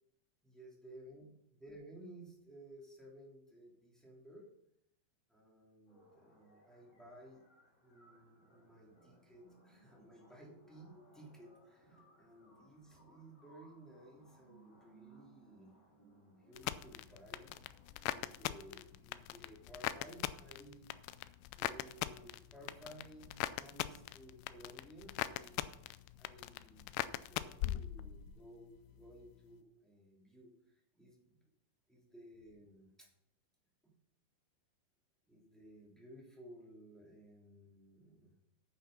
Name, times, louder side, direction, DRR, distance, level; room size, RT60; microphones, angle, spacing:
voice 1, 0.4-4.5 5.3-7.4 7.8-17.5 18.1-20.9 21.5-25.7 26.2-31.2 31.9-33.1 33.8-33.9 35.3-38.3, right 1 dB, ahead, -4 dB, 2.1 m, -57 dB
sound 1, 5.9-19.9, right 1 dB, 35° left, 3.0 m, -66 dB
sound 2, 16.6-28.5 28.8-29.3, left 14 dB, 85° left, 2.6 m, -41 dB
9.2 x 8.6 x 5.3 m, 0.79 s
omnidirectional pair, 4.7 m